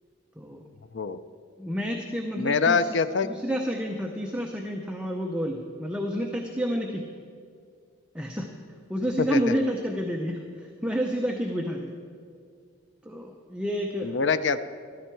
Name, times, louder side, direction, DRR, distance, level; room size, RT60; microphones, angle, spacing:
voice 1, 1.6-3.0 3.2-7.1 8.1-8.5 8.9-11.9 13.0-14.2, equal, 5° right, 1 dB, 0.6 m, -29 dB
voice 2, 2.4-3.3 9.2-9.5 14.0-14.6, left 5 dB, 60° left, 12 dB, 0.5 m, -24 dB
14.5 x 13.0 x 4.6 m, 2.2 s
head